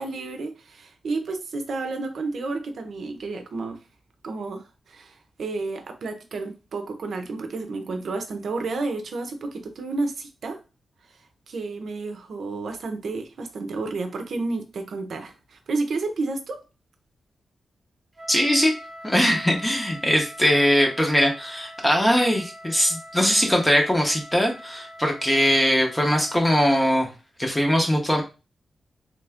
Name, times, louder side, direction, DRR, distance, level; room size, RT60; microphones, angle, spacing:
voice 1, 0.0-3.8 4.2-10.6 11.5-16.6, right 3 dB, 70° right, 6 dB, 0.7 m, -31 dB
Wind instrument woodwind instrument, 18.2-27.0, equal, 25° right, 1.0 m, -43 dB
voice 2, 18.3-18.7 19.0-27.1 27.4-28.2, equal, 10° left, 1 dB, 0.7 m, -21 dB
3.3 x 2.5 x 3.4 m, 0.30 s
wide cardioid pair, 115°, 0 cm